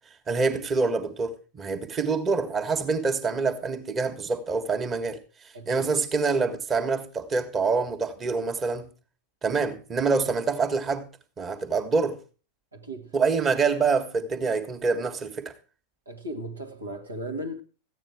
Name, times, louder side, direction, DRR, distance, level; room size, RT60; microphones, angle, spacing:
voice 1, 0.3-5.2 5.6-8.9 9.4-11.1 11.4-12.2 13.1-15.5, right 4 dB, 25° right, 1.5 m, -26 dB
voice 2, 5.5-5.9 12.7-13.1 16.0-17.6, right 1 dB, 80° right, 1.5 m, -36 dB
14.5 x 9.0 x 4.7 m
figure-of-eight pair, 90°, 0 cm